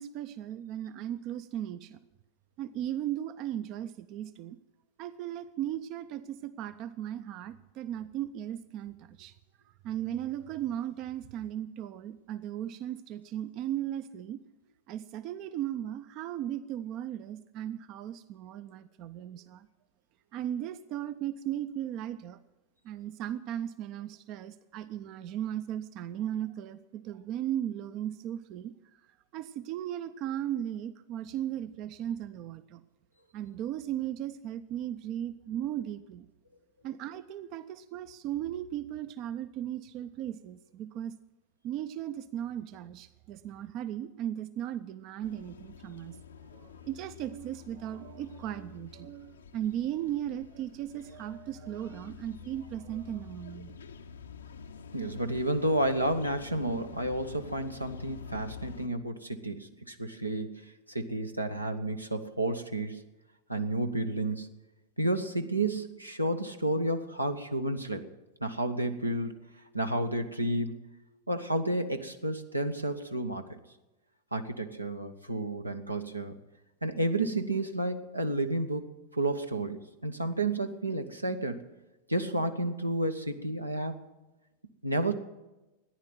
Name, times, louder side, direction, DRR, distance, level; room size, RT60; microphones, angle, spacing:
voice 1, 0.0-2.0 2.6-4.6 5.0-9.3 9.7-14.4 14.9-19.7 20.3-22.4 22.8-28.7 29.3-32.8 33.3-36.3 36.8-41.1 41.6-46.2 46.5-53.7, right 11 dB, 40° right, 14 dB, 0.5 m, -36 dB
sound 1, 45.2-58.9, left 6 dB, 70° left, 0.8 m, -48 dB
voice 2, 54.9-63.0 63.5-64.5 65.0-68.1 68.4-69.3 69.7-70.8 71.3-73.6 74.3-76.3 76.8-81.6 82.1-84.0 84.8-85.1, right 1 dB, 85° right, 6 dB, 1.1 m, -31 dB
14.5 x 10.5 x 7.8 m, 1.0 s
figure-of-eight pair, 90°, 0 cm